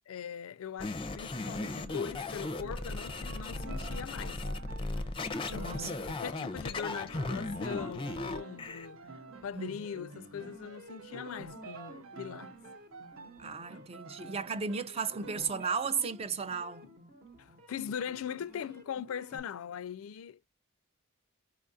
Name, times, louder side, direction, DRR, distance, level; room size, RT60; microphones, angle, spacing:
voice 1, 0.1-4.4 5.5-9.1 9.4-12.5 16.8-16.9 17.4-20.5, left 8 dB, 80° left, 0.4 m, -41 dB
sound 1, 0.8-8.9, left 2 dB, 25° left, 0.5 m, -37 dB
sound 2, 1.4-15.5, right 4 dB, 70° right, 0.7 m, -51 dB
sound 3, 3.5-19.4, right 1 dB, 45° right, 1.0 m, -52 dB
voice 2, 5.5-6.0 9.5-9.9 13.4-16.8, right 5 dB, 30° right, 0.4 m, -35 dB
4.6 x 2.4 x 2.5 m
head